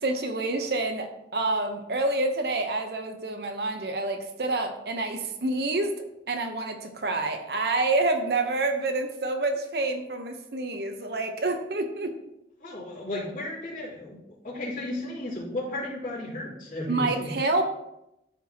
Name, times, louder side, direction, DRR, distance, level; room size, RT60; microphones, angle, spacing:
voice 1, 0.0-12.1 16.9-17.6, right 2 dB, 65° right, 5 dB, 0.8 m, -28 dB
voice 2, 12.6-14.2 14.4-17.3, left 1 dB, 45° left, -9 dB, 3.0 m, -34 dB
13.0 x 4.5 x 2.8 m, 0.85 s
head